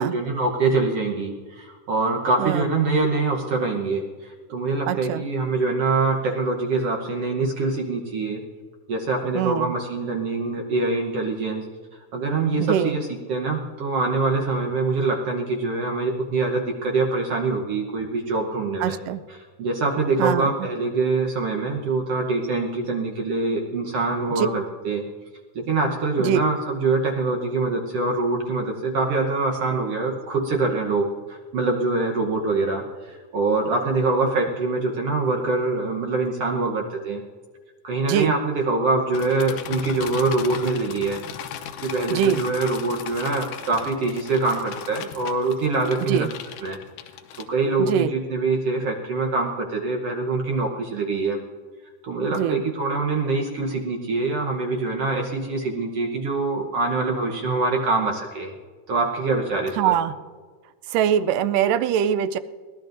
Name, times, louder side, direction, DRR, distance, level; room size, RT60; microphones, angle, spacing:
voice 1, 0.0-8.4 8.9-11.6 12.1-19.0 19.3-25.0 25.5-37.2 37.8-41.2 41.8-46.3 46.6-46.8 47.4-51.4 52.0-58.5 58.9-59.9, right 3 dB, 60° right, 1 dB, 1.7 m, -24 dB
voice 2, 2.4-2.8 4.9-5.2 9.4-9.7 12.6-13.0 18.8-19.2 20.2-20.5 24.4-24.5 26.2-26.4 38.1-38.4 42.1-42.4 46.1-46.3 47.8-48.1 52.3-52.6 59.8-60.1 60.9-62.4, right 9 dB, 90° right, 12 dB, 2.2 m, -23 dB
sound 1, 39.1-47.9, left 9 dB, 85° left, 2.5 m, -37 dB
23.0 x 18.0 x 2.6 m, 1.5 s
omnidirectional pair, 3.7 m